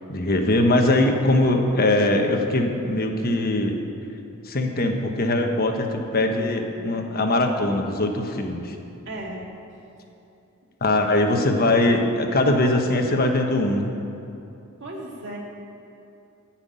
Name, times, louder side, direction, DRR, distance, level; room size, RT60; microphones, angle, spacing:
voice 1, 0.1-3.8 4.4-8.7 10.8-13.9, left 1 dB, 45° left, 4 dB, 1.2 m, -21 dB
voice 2, 9.1-9.5 14.8-15.4, right 1 dB, 60° right, -2 dB, 2.2 m, -35 dB
14.0 x 6.0 x 9.4 m, 2.8 s
head